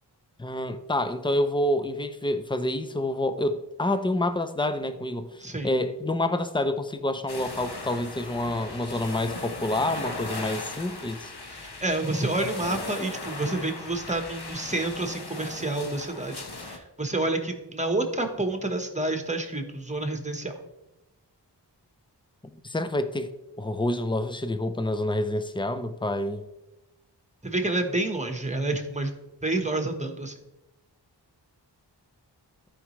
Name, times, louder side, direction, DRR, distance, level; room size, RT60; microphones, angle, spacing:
voice 1, 0.4-5.4 5.6-11.3 22.6-23.3 23.6-26.4, left 1 dB, 10° left, 10 dB, 0.6 m, -28 dB
voice 2, 5.4-5.7 11.5-20.5 27.4-29.1 29.4-30.4, right 2 dB, 15° right, 5 dB, 1.2 m, -29 dB
sound 1, 7.3-16.8, left 3 dB, 60° left, 1.2 m, -38 dB
14.5 x 5.0 x 3.2 m, 0.97 s
wide cardioid pair, 60°, 43 cm